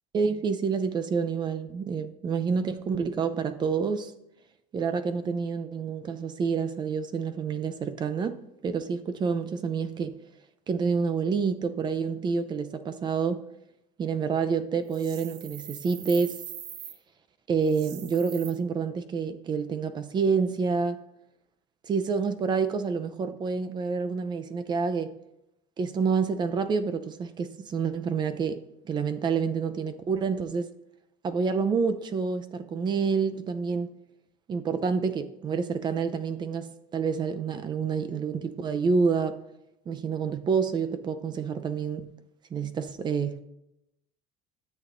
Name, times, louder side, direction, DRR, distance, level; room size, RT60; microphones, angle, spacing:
voice 1, 0.1-4.1 4.7-10.2 10.7-13.4 14.0-16.4 17.5-21.0 21.9-25.1 25.8-30.7 31.2-33.9 34.5-39.4 39.9-42.1 42.5-43.4, right 5 dB, 25° right, 0.6 m, -28 dB
sound 1, 14.9-17.0 17.6-18.5, right 9 dB, 85° right, 1.0 m, -42 dB
12.5 x 8.5 x 2.6 m
cardioid pair, 140°, 16 cm